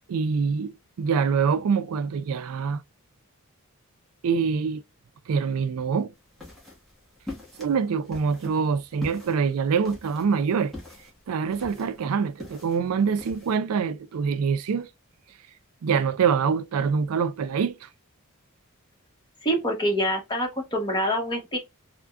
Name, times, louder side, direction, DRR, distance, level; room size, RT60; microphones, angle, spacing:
voice 1, 0.1-2.8 4.2-4.8 5.3-6.1 7.6-10.7 11.3-14.9 15.8-17.9, right 6 dB, 75° right, 0.4 m, -25 dB
sound 1, 6.2-13.6, left 2 dB, ahead, 1.1 m, -43 dB
voice 2, 19.4-21.6, equal, 20° left, 1.0 m, -26 dB
3.4 x 2.1 x 2.3 m
head